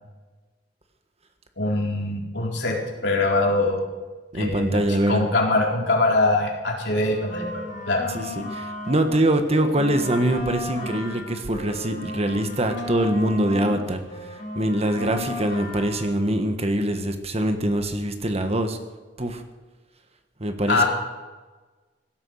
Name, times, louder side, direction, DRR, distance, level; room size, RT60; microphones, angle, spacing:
voice 1, 1.6-2.8 3.0-3.8 4.3-8.1 20.7-20.8, left 2 dB, 70° left, -1 dB, 4.0 m, -23 dB
voice 2, 4.3-5.2 8.1-14.0 14.5-18.8 19.2-19.4 20.4-20.8, right 1 dB, 35° right, 7 dB, 1.5 m, -23 dB
sound 1, 6.9-9.2 9.5-13.8 14.1-16.1, left 2 dB, 45° left, 3.8 m, -35 dB
16.5 x 12.5 x 6.5 m, 1.3 s
head